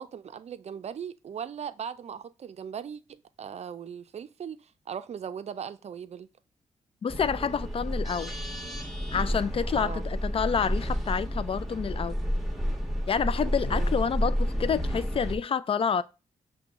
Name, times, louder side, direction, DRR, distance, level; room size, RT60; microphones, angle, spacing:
voice 1, 0.0-6.3 9.8-10.0 13.7-13.9, right 8 dB, 50° right, 0.5 m, -39 dB
voice 2, 7.0-8.3 9.1-12.2 13.1-16.0, left 6 dB, 40° left, 0.4 m, -28 dB
sound 1, 7.1-15.4, equal, ahead, 1.2 m, -30 dB
5.9 x 2.2 x 3.6 m
supercardioid pair, 45°, 14 cm